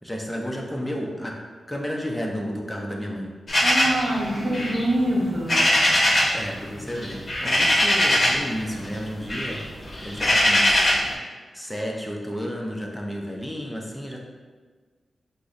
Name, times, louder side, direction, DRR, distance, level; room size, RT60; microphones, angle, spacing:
voice 1, 0.0-1.4 1.7-3.3 6.1-9.6 10.0-11.0 11.5-14.2, equal, 5° left, 0 dB, 0.5 m, -32 dB
sound 1, 3.5-6.4 6.7-8.5 8.8-11.1, left 1 dB, 40° left, 0.8 m, -21 dB
voice 2, 3.6-5.6, right 1 dB, 60° right, -3 dB, 0.8 m, -24 dB
5.3 x 2.1 x 2.4 m, 1.5 s
cardioid pair, 80°, 0 cm